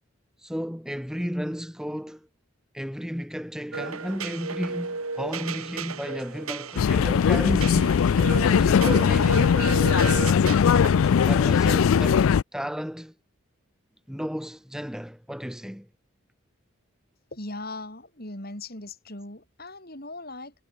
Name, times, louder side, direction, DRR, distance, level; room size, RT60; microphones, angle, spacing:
voice 1, 0.4-2.3 2.7-8.0 8.4-9.5 11.3-13.1 14.1-15.9, equal, 5° right, 3.3 m, -33 dB
sound 1, 3.7-11.2, right 4 dB, 85° right, 3.4 m, -33 dB
sound 2, 6.8-12.4, left 7 dB, 75° left, 0.4 m, -20 dB
voice 2, 17.3-20.5, left 2 dB, 45° left, 5.9 m, -39 dB
head